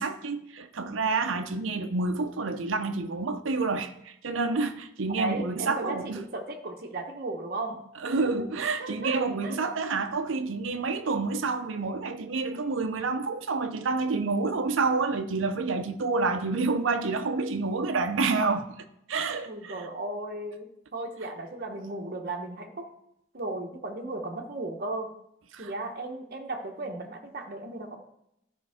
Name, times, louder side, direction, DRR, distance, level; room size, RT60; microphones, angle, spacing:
voice 1, 0.0-6.2 8.0-18.7 19.1-19.8 25.5-25.7, right 3 dB, 80° right, 0.6 m, -28 dB
voice 2, 5.1-7.8 8.0-8.2 8.8-9.6 19.4-22.9 23.3-25.1 25.6-28.0, right 2 dB, 50° right, 1.0 m, -35 dB
12.5 x 5.3 x 3.5 m
head